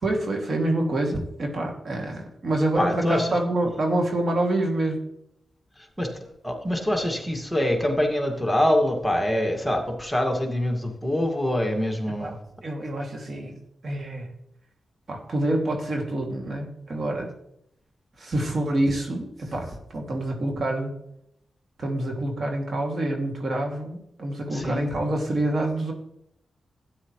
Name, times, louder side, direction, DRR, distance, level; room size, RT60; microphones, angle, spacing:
voice 1, 0.0-5.0 12.2-13.5 13.8-14.3 15.1-17.3 18.2-20.9 21.8-25.9, right 1 dB, 55° right, 1 dB, 2.6 m, -27 dB
voice 2, 2.8-3.3 6.0-12.4 24.5-24.9, left 1 dB, ahead, 1 dB, 2.2 m, -25 dB
12.5 x 9.5 x 3.2 m, 0.77 s
cardioid pair, 55°, 0 cm